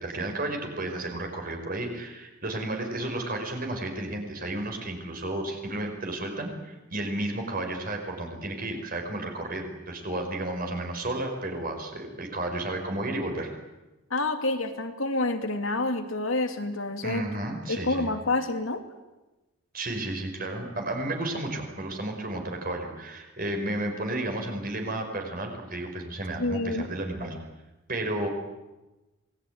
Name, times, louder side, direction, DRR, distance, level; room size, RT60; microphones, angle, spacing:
voice 1, 0.0-13.5 17.0-18.1 19.7-27.4 27.9-28.3, right 1 dB, 40° right, 3 dB, 5.3 m, -32 dB
voice 2, 14.1-17.2 17.7-18.8 26.4-26.9, left 2 dB, 70° left, 6 dB, 2.5 m, -28 dB
27.0 x 20.0 x 9.5 m, 1.1 s
head